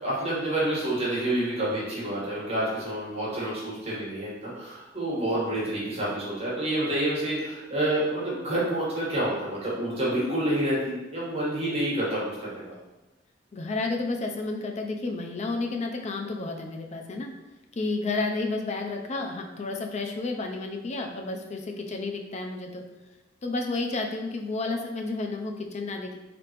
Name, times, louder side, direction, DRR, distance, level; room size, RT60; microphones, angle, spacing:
voice 1, 0.0-12.6, right 1 dB, 35° right, -7 dB, 1.4 m, -28 dB
voice 2, 13.5-17.3 17.7-22.8 23.4-26.2, left 3 dB, 40° left, 3 dB, 0.4 m, -31 dB
3.7 x 3.4 x 3.0 m, 1.0 s
head